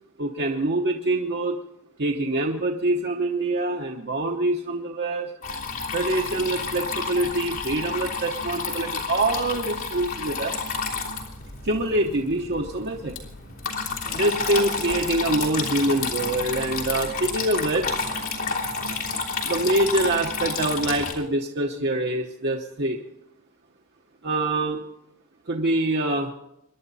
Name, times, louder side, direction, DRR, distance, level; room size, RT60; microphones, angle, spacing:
voice 1, 0.2-1.6 2.0-5.3 5.9-10.6 11.6-13.2 14.1-18.0 19.4-23.0 24.2-24.8 25.5-26.3, right 2 dB, 50° right, 1 dB, 1.0 m, -25 dB
Water tap faucet / Trickle dribble, 5.4-21.1, left 4 dB, 65° left, 3.3 m, -30 dB
24.5 x 11.0 x 4.1 m, 0.83 s
head